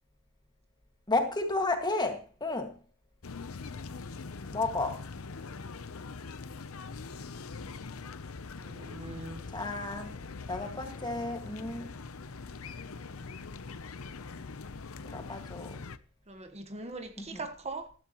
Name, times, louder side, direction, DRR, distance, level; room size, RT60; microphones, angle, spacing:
voice 1, 1.1-2.8 4.5-5.0 9.5-10.2 10.5-11.9 15.0-15.8 17.2-17.4, left 2 dB, 20° left, 2.0 m, -32 dB
sound 1, 3.2-16.0, left 4 dB, 75° left, 0.8 m, -42 dB
voice 2, 8.6-9.5 16.3-17.9, right 3 dB, 30° right, 1.4 m, -41 dB
14.5 x 13.5 x 3.1 m
head